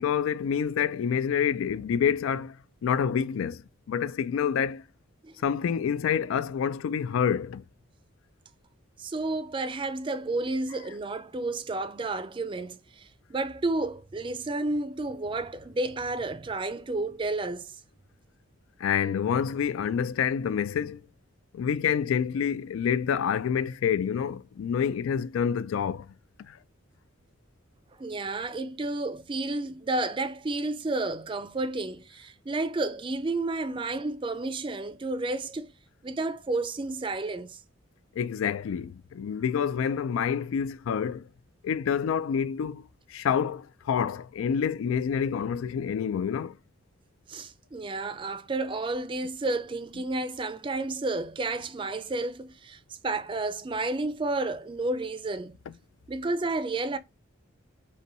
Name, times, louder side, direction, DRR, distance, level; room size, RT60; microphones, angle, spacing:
voice 1, 0.0-2.6 2.8-4.8 5.4-7.6 18.8-21.0 21.5-26.1 26.5-26.6 38.2-41.3 41.6-46.6, left 7 dB, 85° left, 0.3 m, -27 dB
voice 2, 9.0-17.8 28.0-35.7 36.0-37.6 47.3-55.5 56.1-57.0, right 2 dB, 25° right, 0.4 m, -31 dB
5.3 x 2.2 x 2.9 m
head